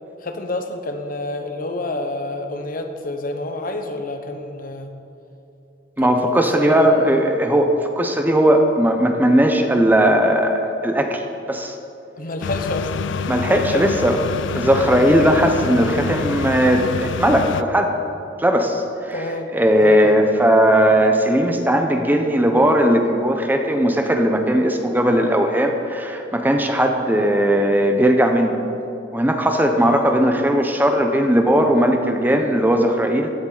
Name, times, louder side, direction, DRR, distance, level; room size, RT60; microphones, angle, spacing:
voice 1, 0.2-4.9 6.0-7.1 12.2-12.9 13.2-14.2 19.1-20.1 29.8-30.1, left 2 dB, 50° left, 5 dB, 1.0 m, -29 dB
voice 2, 6.0-11.8 13.3-14.2 14.5-17.9 18.4-19.2 19.5-28.6 29.1-33.3, equal, 10° right, 4 dB, 0.8 m, -18 dB
sound 1, 12.4-17.6, left 5 dB, 80° left, 0.4 m, -27 dB
16.0 x 10.0 x 4.0 m, 2.7 s
head